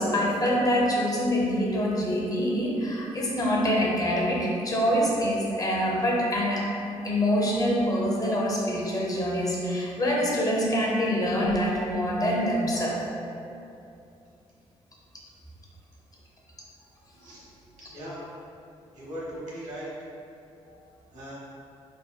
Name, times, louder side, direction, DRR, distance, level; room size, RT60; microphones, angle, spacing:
voice 1, 0.0-6.7 7.0-13.0, equal, 30° left, -3 dB, 0.6 m, -25 dB
voice 2, 17.9-18.2 18.9-19.9 21.1-21.3, equal, 75° right, -8 dB, 0.9 m, -38 dB
2.8 x 2.2 x 2.2 m, 2.6 s
supercardioid pair, 55°, 13 cm